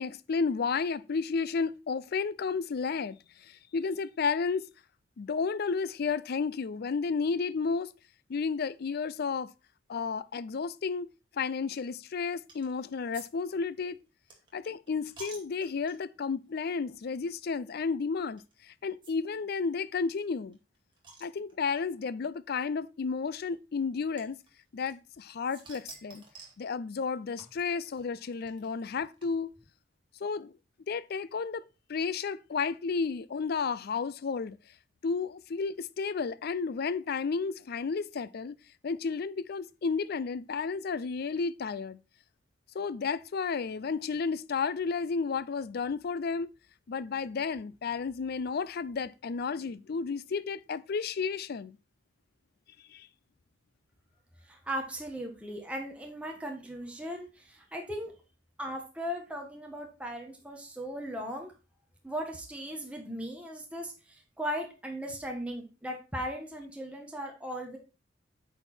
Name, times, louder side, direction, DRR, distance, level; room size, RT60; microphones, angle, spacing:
voice 1, 0.0-3.2 3.4-4.7 5.2-7.9 8.3-9.5 9.9-11.1 11.3-14.0 14.5-20.6 21.2-24.4 24.7-26.2 26.6-29.5 30.2-30.5 30.9-31.6 31.9-34.6 35.0-38.6 38.8-42.0 42.7-46.5 46.9-51.8 52.9-53.1, left 5 dB, 55° left, 0.4 m, -32 dB
sound 1, 12.5-12.8 13.1-13.3 13.5-16.2 16.8-17.0 17.2-17.3 18.4-18.5 19.0-19.1 19.4-19.5 19.7-19.8 20.2-21.8 22.7-22.8 24.2-25.2 25.5-26.6 27.4-29.7, right 3 dB, 25° right, 2.2 m, -51 dB
voice 2, 54.4-58.1 58.6-61.5 62.0-67.8, equal, 5° right, 1.3 m, -38 dB
8.8 x 4.6 x 4.4 m
head